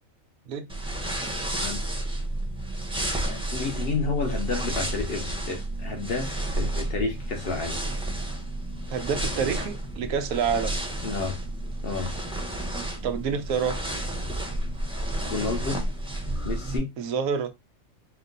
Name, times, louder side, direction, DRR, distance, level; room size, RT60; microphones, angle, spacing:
sound 1, 0.7-16.8, right 1 dB, 5° right, 0.6 m, -31 dB
voice 1, 3.2-7.8 11.0-11.4 11.8-12.1 15.3-15.8 16.4-16.9, left 4 dB, 50° left, 0.9 m, -30 dB
voice 2, 8.9-10.7 13.0-13.8 17.0-17.5, right 6 dB, 90° right, 1.1 m, -27 dB
4.4 x 2.1 x 3.8 m
omnidirectional pair, 1.4 m